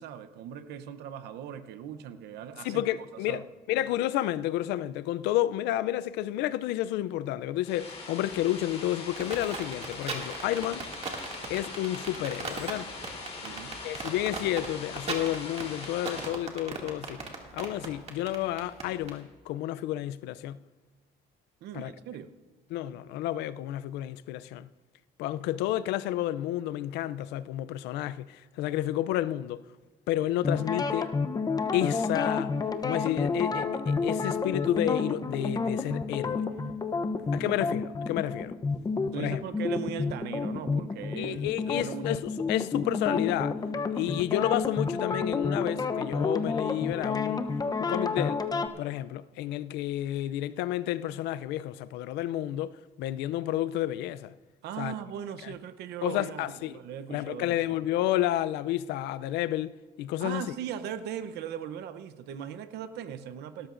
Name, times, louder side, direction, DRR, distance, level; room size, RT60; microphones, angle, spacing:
voice 1, 0.0-2.8 3.3-3.5 13.4-13.7 21.6-22.3 37.1-37.5 39.1-42.2 54.6-57.6 60.2-63.7, right 9 dB, 80° right, 0.8 m, -39 dB
voice 2, 2.6-3.4 3.7-10.8 11.5-12.9 13.8-17.2 17.5-20.6 21.7-21.9 22.7-24.7 25.2-29.6 30.1-31.1 31.7-32.6 32.8-36.5 37.3-38.5 39.2-39.4 41.2-43.6 43.9-47.5 47.8-48.4 48.8-54.3 54.8-55.0 55.4-55.5 56.0-56.8 57.1-59.7 60.0-60.4, left 13 dB, 90° left, 0.5 m, -30 dB
sound 1, 7.6-16.3, left 3 dB, 40° left, 3.9 m, -42 dB
sound 2, 9.2-19.1, right 4 dB, 40° right, 2.2 m, -37 dB
sound 3, 30.4-48.7, left 4 dB, 20° left, 0.7 m, -30 dB
18.0 x 13.0 x 2.5 m
cardioid pair, 110°, 17 cm